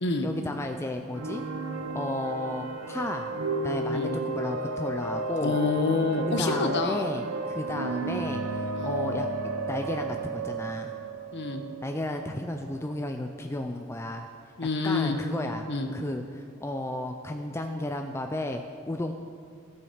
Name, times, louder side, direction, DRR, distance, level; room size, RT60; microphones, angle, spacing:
voice 1, 0.2-1.5 1.9-3.3 3.6-5.5 6.3-9.3 9.7-10.9 11.8-14.3 14.8-15.6 15.9-19.1, left 1 dB, 10° left, 4 dB, 0.4 m, -33 dB
sound 1, 1.1-12.8, right 2 dB, 80° right, 0.6 m, -33 dB
voice 2, 5.4-7.0 8.7-9.0 11.3-11.6 14.6-15.2 15.7-15.9, left 3 dB, 55° left, 6 dB, 0.9 m, -27 dB
15.0 x 7.1 x 5.0 m, 2.2 s
head